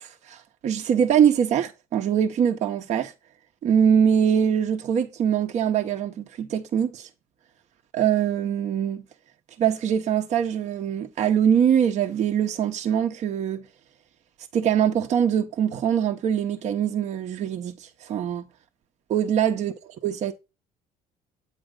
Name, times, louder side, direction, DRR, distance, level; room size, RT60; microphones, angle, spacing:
voice 1, 0.0-3.1 3.6-7.1 7.9-9.0 9.6-13.6 14.5-18.4 19.1-19.7 20.0-20.3, right 8 dB, 50° right, 0.8 m, -23 dB
7.9 x 4.3 x 3.7 m
supercardioid pair, 85°, 15 cm